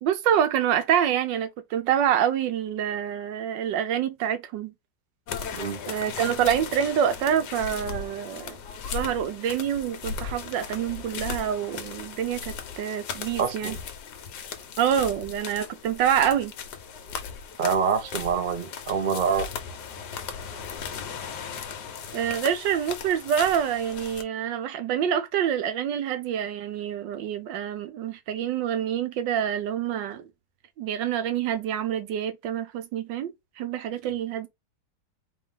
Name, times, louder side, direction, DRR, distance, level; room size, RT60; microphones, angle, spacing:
voice 1, 0.0-4.7 5.9-8.6 8.9-13.8 14.8-16.5 22.1-30.3 30.8-33.3 33.6-34.5, right 9 dB, 80° right, 1.4 m, -26 dB
sound 1, 5.3-24.2, left 6 dB, 70° left, 1.4 m, -37 dB
voice 2, 13.4-13.8 17.6-19.5, right 6 dB, 55° right, 0.5 m, -26 dB
4.5 x 3.1 x 3.6 m
omnidirectional pair, 1.9 m